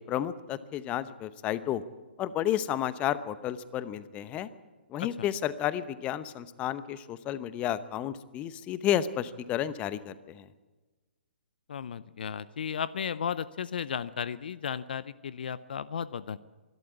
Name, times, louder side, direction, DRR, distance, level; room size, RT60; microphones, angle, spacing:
voice 1, 0.1-1.8 2.2-4.5 4.9-10.4, left 11 dB, 20° left, 16 dB, 0.8 m, -31 dB
voice 2, 11.7-16.4, left 7 dB, 55° left, 18 dB, 0.6 m, -34 dB
25.0 x 12.5 x 9.6 m, 1.3 s
figure-of-eight pair, 125°, 6 cm